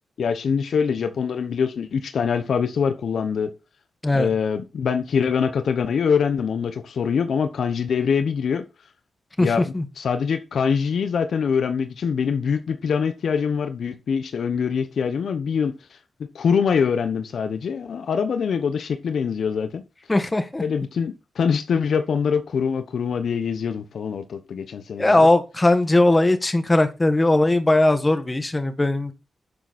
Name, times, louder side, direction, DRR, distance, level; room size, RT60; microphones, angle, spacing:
voice 1, 0.2-3.5 4.1-8.7 9.4-15.7 16.3-19.8 20.6-25.3, left 6 dB, 75° left, 1.1 m, -24 dB
voice 2, 9.4-9.8 20.1-20.6 25.0-29.1, left 2 dB, 20° left, 1.7 m, -19 dB
11.0 x 6.9 x 4.3 m
cardioid pair, 95°, 0 cm